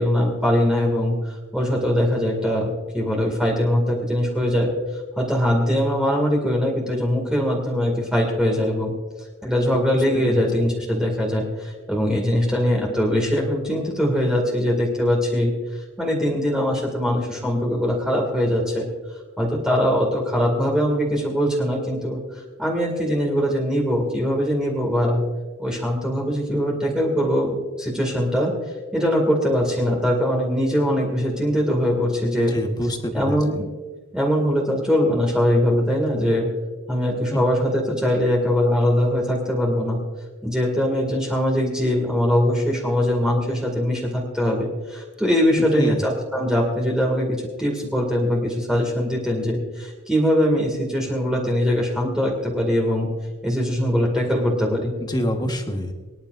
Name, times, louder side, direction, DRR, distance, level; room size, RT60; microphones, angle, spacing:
voice 1, 0.0-4.7 5.2-8.9 9.4-18.9 19.4-25.2 25.6-28.5 28.9-32.5 33.1-33.6 34.1-36.5 36.9-40.0 40.4-53.1 53.4-54.9, equal, 5° right, -2 dB, 2.2 m, -22 dB
voice 2, 32.5-33.4 37.3-37.4 45.7-46.0 55.0-55.9, equal, 20° left, 4 dB, 1.3 m, -26 dB
24.5 x 10.5 x 2.6 m, 1.3 s
head